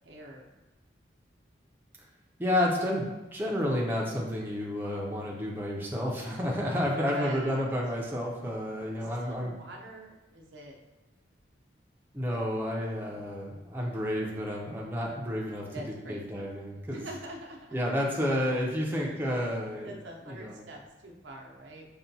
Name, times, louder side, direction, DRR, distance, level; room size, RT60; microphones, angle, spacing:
voice 1, 0.0-0.5 6.8-7.6 9.0-10.8 12.3-12.4 15.7-16.5 16.9-17.6 18.9-19.3 19.8-21.8, right 1 dB, 85° right, 0 dB, 0.7 m, -44 dB
voice 2, 2.4-9.5 12.1-17.0 17.7-20.0 20.2-20.6, equal, 10° right, -3 dB, 0.5 m, -31 dB
5.5 x 2.2 x 2.7 m, 1.1 s
head